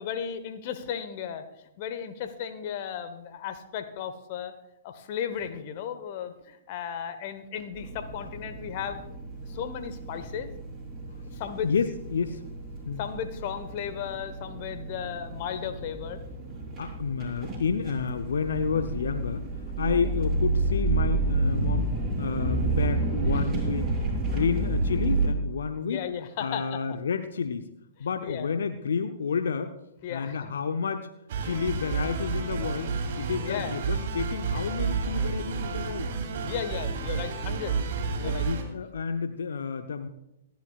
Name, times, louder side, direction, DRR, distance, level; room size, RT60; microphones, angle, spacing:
voice 1, 0.0-1.5 1.8-4.5 4.8-9.0 9.4-10.5 11.3-11.7 13.0-16.2 23.3-23.5 25.9-26.8 28.2-28.5 30.0-30.5 33.4-33.7 36.4-37.8 38.1-38.5, left 8 dB, 45° left, 10 dB, 1.2 m, -35 dB
sound 1, 7.7-25.3, right 2 dB, 15° right, 5.9 m, -30 dB
voice 2, 11.6-12.4 12.9-13.0 16.8-19.5 19.8-21.9 22.2-23.9 24.2-26.0 26.4-27.7 28.0-29.8 30.1-31.1 31.4-36.1 38.2-40.1, left 6 dB, 65° left, 9 dB, 0.7 m, -30 dB
sound 2, 31.3-38.6, right 5 dB, 50° right, 3.2 m, -30 dB
26.5 x 10.5 x 2.4 m, 0.88 s
figure-of-eight pair, 110°, 0 cm